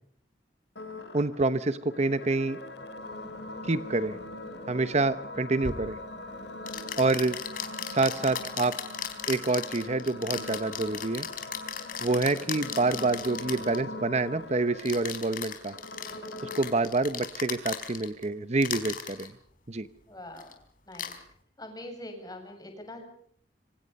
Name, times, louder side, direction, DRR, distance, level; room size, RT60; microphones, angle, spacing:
sound 1, 0.8-16.8, left 2 dB, 65° left, 4.7 m, -42 dB
voice 1, 1.1-2.6 3.6-4.2 4.7-6.0 7.0-7.4 7.9-8.7 9.3-11.3 12.0-15.7 16.5-19.3 19.7-19.9, right 3 dB, 40° right, 13 dB, 0.9 m, -27 dB
sound 2, 5.6-5.8 6.7-13.8 14.8-18.2 18.6-19.3 20.3-20.5 20.9-21.2, left 8 dB, 50° left, 4.4 m, -37 dB
voice 2, 20.1-20.5 20.9-21.1 21.6-23.0, left 1 dB, 20° left, 5 dB, 7.3 m, -43 dB
27.0 x 25.0 x 5.4 m, 0.64 s
head